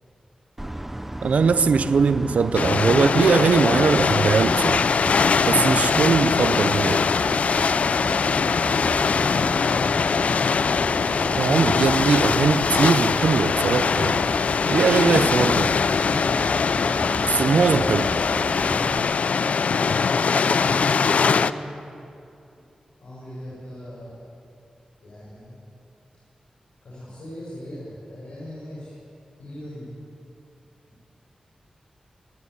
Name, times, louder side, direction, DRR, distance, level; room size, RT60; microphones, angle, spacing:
sound 1, 0.6-19.0, right 1 dB, 10° right, 0.8 m, -34 dB
voice 1, 1.2-4.8 5.5-7.1 11.4-14.2 14.7-15.7 17.2-18.1, right 5 dB, 85° right, 12 dB, 0.6 m, -20 dB
sound 2, 2.5-21.5, left 5 dB, 75° left, 0.5 m, -22 dB
voice 2, 18.6-19.2 20.4-21.7 23.0-24.2 25.0-25.6 26.8-28.9 29.4-29.9, equal, 90° left, -9 dB, 7.3 m, -39 dB
24.0 x 11.5 x 9.9 m, 2.6 s
wide cardioid pair, 85°, 2 cm